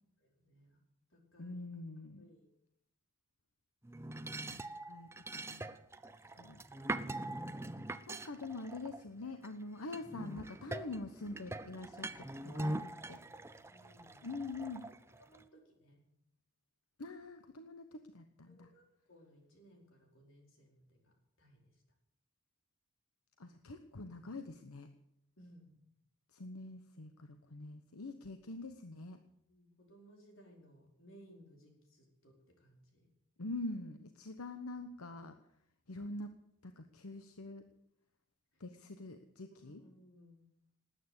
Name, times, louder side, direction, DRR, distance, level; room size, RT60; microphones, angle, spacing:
voice 1, 0.2-0.8 1.1-1.6 2.2-2.5 4.0-4.7 6.2-6.3 12.5-12.7 13.3-14.3 15.2-16.0 18.5-21.8 25.4-25.8 29.5-33.1 38.5-38.6 39.6-40.5, equal, 65° left, 1 dB, 4.9 m, -62 dB
voice 2, 1.4-2.3 4.5-4.6 4.9-5.1 5.3-5.7 6.4-6.6 8.1-12.3 12.5-12.8 13.1-13.2 14.2-14.9 17.0-18.7 23.4-24.9 26.3-29.2 33.4-35.4 35.9-36.4 36.6-37.7 38.6-39.8, left 2 dB, 90° left, 8 dB, 1.1 m, -45 dB
sound 1, 3.8-9.5 9.9-15.4, right 2 dB, 10° right, 0.6 m, -43 dB
19.5 x 9.3 x 8.1 m, 0.78 s
head